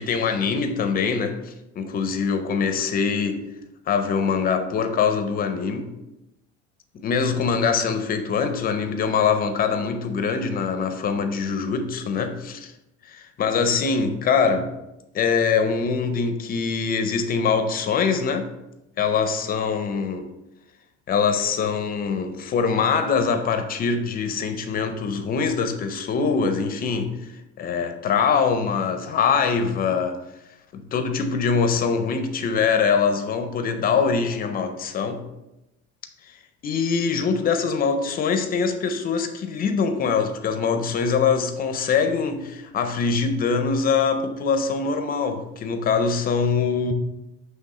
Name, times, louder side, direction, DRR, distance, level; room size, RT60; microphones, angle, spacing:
voice 1, 0.0-3.4 3.9-5.9 6.9-12.7 13.1-14.7 15.1-18.5 19.0-20.3 21.1-27.3 27.6-30.2 30.7-35.2 36.3-36.4 36.6-46.9, left 5 dB, 30° left, 7 dB, 0.5 m, -23 dB
7.6 x 3.2 x 4.2 m, 0.93 s
cardioid pair, 170°, 30 cm